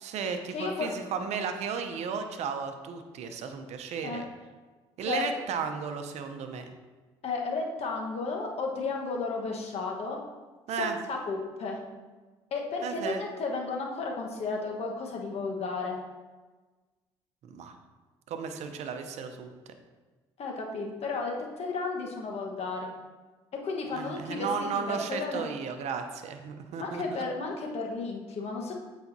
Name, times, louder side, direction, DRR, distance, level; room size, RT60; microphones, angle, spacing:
voice 1, 0.0-4.2 5.0-6.7 10.7-11.0 12.8-13.2 17.4-17.8 18.3-19.5 23.9-27.2, right 6 dB, 60° right, 6 dB, 0.7 m, -34 dB
voice 2, 0.5-0.9 4.0-4.2 5.0-5.4 7.2-10.2 10.8-11.8 12.5-16.0 20.4-22.9 23.6-25.5 26.8-28.7, left 3 dB, 55° left, 1 dB, 1.2 m, -33 dB
8.0 x 5.0 x 2.7 m, 1.3 s
hypercardioid pair, 55°, 13 cm